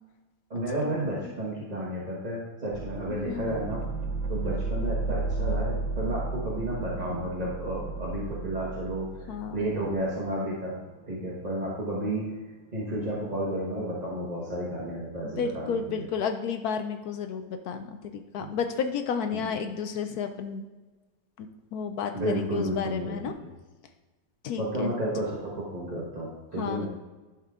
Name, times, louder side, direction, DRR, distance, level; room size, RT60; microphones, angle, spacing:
voice 1, 0.5-3.8 4.3-9.1 9.5-10.8 11.1-12.3 12.7-16.0 18.4-18.5 19.3-19.5 22.1-23.1 23.4-23.5 24.6-26.9, right 1 dB, 25° right, -6 dB, 1.1 m, -32 dB
sound 1, 2.7-12.0 12.3-12.4, right 3 dB, 80° right, 1.4 m, -33 dB
voice 2, 3.3-3.6 9.3-9.7 15.2-20.7 21.4-21.5 21.7-23.3 24.4-24.9 26.6-26.9, left 6 dB, 70° left, 7 dB, 0.9 m, -32 dB
11.5 x 4.5 x 3.6 m, 1.3 s
omnidirectional pair, 2.1 m